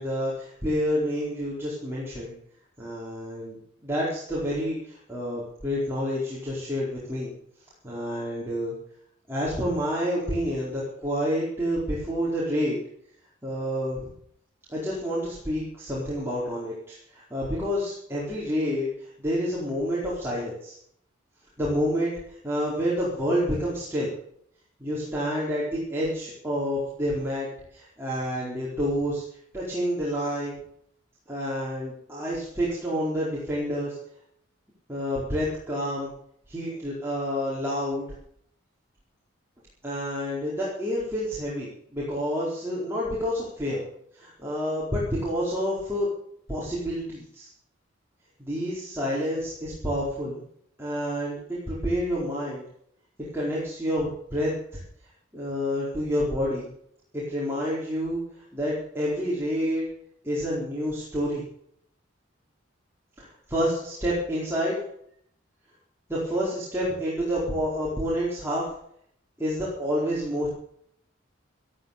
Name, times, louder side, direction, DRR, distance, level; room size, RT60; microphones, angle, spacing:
voice 1, 0.0-2.3 2.8-3.6 3.8-7.3 7.8-8.7 9.3-12.8 13.4-14.1 14.7-20.8 21.6-24.1 24.8-27.5 27.7-29.2 29.5-30.5 31.3-34.0 34.9-36.1 36.5-38.0 39.8-43.8 44.1-46.1 46.5-47.5 48.5-50.4 50.8-51.4 51.7-52.6 53.2-54.8 55.3-56.7 57.1-58.2 58.5-59.9 60.2-61.4 63.2-64.8 66.1-68.6 69.4-70.5, equal, 10° right, -7 dB, 4.5 m, -28 dB
14.5 x 13.0 x 6.9 m, 0.67 s
head